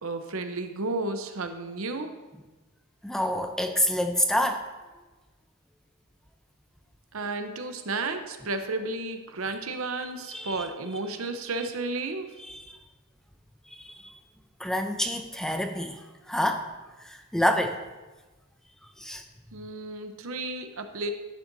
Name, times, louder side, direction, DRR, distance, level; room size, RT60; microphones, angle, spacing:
voice 1, 0.0-2.1 7.1-12.3 19.5-21.1, right 3 dB, 70° right, 7 dB, 0.8 m, -32 dB
voice 2, 3.0-4.6 10.3-10.6 12.4-12.8 13.8-14.1 14.6-16.0 16.3-16.7 17.0-17.8 19.0-19.2, left 1 dB, ahead, 5 dB, 0.5 m, -27 dB
11.0 x 8.8 x 2.7 m, 1.2 s
head